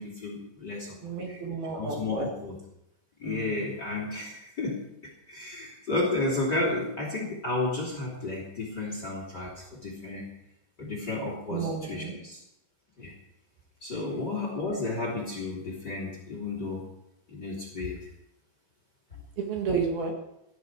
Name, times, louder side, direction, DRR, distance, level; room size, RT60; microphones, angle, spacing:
voice 1, 0.0-1.0 1.3-1.4 1.7-2.6 3.2-10.3 10.8-12.4 13.0-13.1 13.8-16.8 17.3-18.1, left 2 dB, 25° left, 0 dB, 2.9 m, -32 dB
voice 2, 1.0-2.3 3.2-3.6 11.5-12.1 14.1-14.3 19.4-20.1, right 5 dB, 60° right, 2 dB, 3.5 m, -32 dB
18.0 x 13.0 x 4.8 m, 0.83 s
omnidirectional pair, 5.2 m